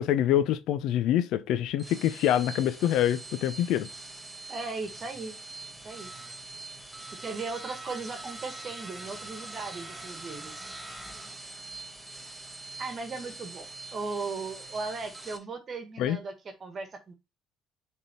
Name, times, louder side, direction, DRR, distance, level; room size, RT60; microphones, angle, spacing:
voice 1, 0.0-3.9 16.0-16.2, left 11 dB, 70° left, 0.6 m, -25 dB
sound 1, 1.7-15.4, right 2 dB, 10° right, 1.4 m, -43 dB
voice 2, 4.5-5.3 5.8-6.1 7.1-10.5 12.8-13.7 13.9-17.1, right 4 dB, 45° right, 1.4 m, -37 dB
6.1 x 3.6 x 4.2 m
hypercardioid pair, 60°, 0 cm